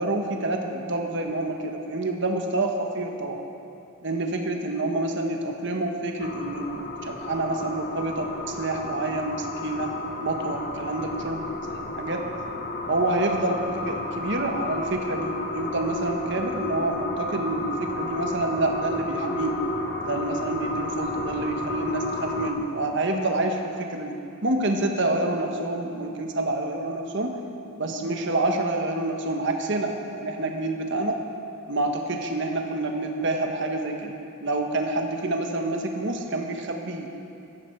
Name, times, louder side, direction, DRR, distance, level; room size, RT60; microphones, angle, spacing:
voice 1, 0.0-3.4 4.0-9.9 10.2-11.4 11.7-12.3 12.9-19.6 20.0-24.2 24.4-27.3 27.8-31.2 31.7-37.1, right 2 dB, 55° right, 3 dB, 1.3 m, -27 dB
sound 1, 6.2-22.5, left 2 dB, 50° left, 1.1 m, -32 dB
16.0 x 13.5 x 4.6 m, 2.7 s
head